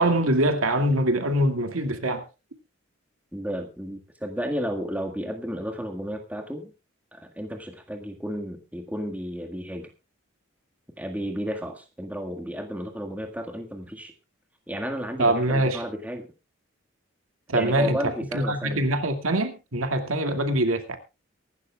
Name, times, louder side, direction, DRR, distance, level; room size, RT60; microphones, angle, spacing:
voice 1, 0.0-2.2 15.2-15.8 17.5-18.0 18.3-21.0, right 1 dB, 90° right, 2.2 m, -23 dB
voice 2, 3.3-6.7 7.1-9.9 11.0-14.1 14.7-16.3 17.5-18.9, equal, 5° right, 1.7 m, -32 dB
23.5 x 12.0 x 2.3 m
head